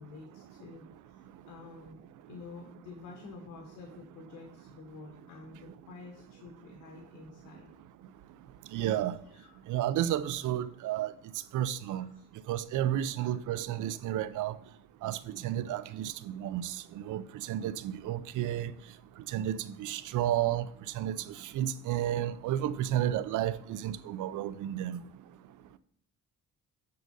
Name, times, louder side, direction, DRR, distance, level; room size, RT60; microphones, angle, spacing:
voice 1, 0.0-2.0 2.3-7.7 9.3-9.6 10.2-10.4 11.4-11.5 11.9-12.3 13.2-13.4, left 4 dB, 80° left, 1.5 m, -49 dB
voice 2, 8.7-9.1 9.7-11.1 11.5-12.1 12.5-14.5 15.0-16.7 17.1-17.2 17.5-18.7 19.3-20.7 21.0-21.2 21.5-25.0, right 12 dB, 80° right, 0.6 m, -31 dB
9.4 x 3.9 x 5.2 m
cardioid pair, 90°, 30 cm